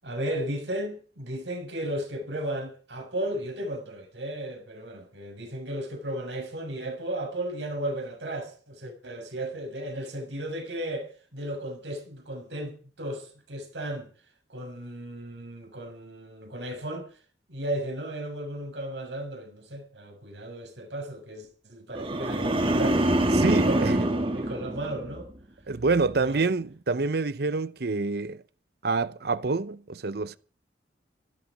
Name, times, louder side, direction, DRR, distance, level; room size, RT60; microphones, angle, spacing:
voice 1, 0.0-14.1 14.5-17.1 17.5-25.3 26.2-26.5, right 1 dB, 85° right, 6.8 m, -35 dB
sound 1, 21.9-25.4 25.8-26.2, right 1 dB, 30° right, 2.0 m, -25 dB
voice 2, 23.3-24.0 25.7-28.4 28.8-30.4, right 3 dB, 60° right, 0.7 m, -27 dB
17.0 x 15.0 x 5.2 m
head